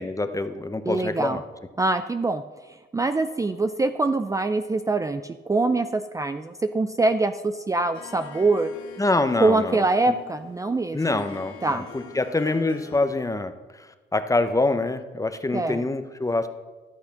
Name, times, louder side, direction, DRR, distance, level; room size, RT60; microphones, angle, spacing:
voice 1, 0.0-1.4 9.0-10.1 10.9-16.5, left 2 dB, 15° left, 9 dB, 0.7 m, -26 dB
voice 2, 0.9-1.4 1.8-2.4 2.9-8.7 9.4-11.2 11.6-11.8 15.5-15.8, right 3 dB, 15° right, 9 dB, 0.4 m, -24 dB
Harp, 7.9-13.4, left 6 dB, 80° left, 1.7 m, -45 dB
13.0 x 6.4 x 5.9 m, 1.2 s
cardioid pair, 90°, 20 cm